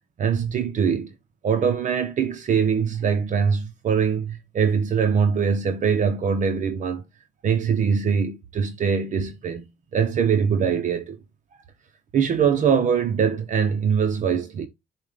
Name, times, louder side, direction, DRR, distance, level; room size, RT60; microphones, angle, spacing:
voice 1, 0.2-1.1 1.4-7.0 7.4-9.6 9.9-11.2 12.1-14.7, right 6 dB, 50° right, 1.1 m, -22 dB
7.2 x 2.6 x 5.1 m
cardioid pair, 110°, 17 cm